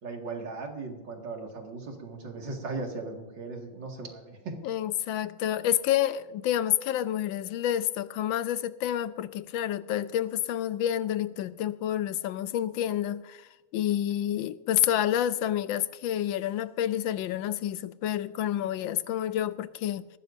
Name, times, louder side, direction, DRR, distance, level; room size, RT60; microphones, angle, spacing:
voice 1, 0.0-4.6, right 3 dB, 65° right, 2.7 m, -38 dB
voice 2, 4.6-20.1, left 11 dB, 80° left, 1.3 m, -29 dB
19.0 x 15.0 x 2.6 m
omnidirectional pair, 2.1 m